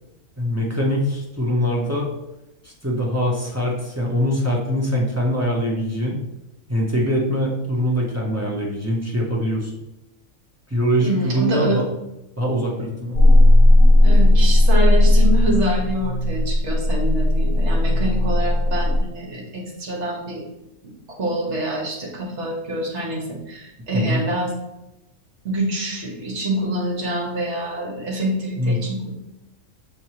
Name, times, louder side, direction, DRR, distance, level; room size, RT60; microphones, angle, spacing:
voice 1, 0.4-2.1 2.6-6.2 6.7-9.7 10.7-11.9 12.4-13.2 23.9-24.2 28.6-28.8, equal, 20° right, -3 dB, 0.4 m, -23 dB
voice 2, 11.0-11.8 14.0-20.4 20.8-24.5 25.4-29.1, right 1 dB, 60° right, -1 dB, 1.4 m, -26 dB
sound 1, 13.1-19.0, left 1 dB, 75° left, 1.2 m, -15 dB
5.7 x 3.0 x 2.9 m, 0.94 s
omnidirectional pair, 1.4 m